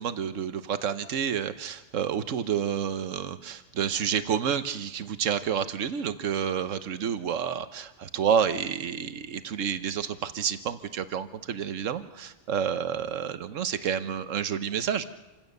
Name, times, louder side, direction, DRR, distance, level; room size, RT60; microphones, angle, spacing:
voice 1, 0.0-15.0, right 8 dB, 80° right, 12 dB, 1.3 m, -29 dB
28.0 x 16.5 x 6.6 m, 1.1 s
omnidirectional pair, 1.3 m